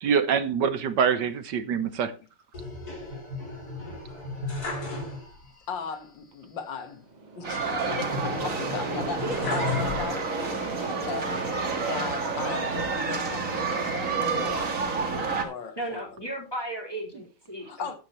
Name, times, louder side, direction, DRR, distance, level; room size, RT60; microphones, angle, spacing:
voice 1, 0.0-2.1, right 7 dB, 65° right, 1.6 m, -25 dB
sound 1, 2.5-5.6 5.9-6.0 7.8-10.5 11.1-11.9, left 3 dB, 50° left, 3.9 m, -34 dB
voice 2, 5.7-7.1 7.3-11.4 11.7-14.8 15.4-16.0 17.6-17.9, left 6 dB, 70° left, 2.2 m, -37 dB
sound 2, 7.0-14.0, right 4 dB, 25° right, 1.1 m, -38 dB
sound 3, 7.4-15.4, right 4 dB, 45° right, 2.2 m, -29 dB
voice 3, 15.8-18.0, right 1 dB, 10° left, 3.8 m, -35 dB
13.0 x 8.8 x 3.1 m
omnidirectional pair, 2.1 m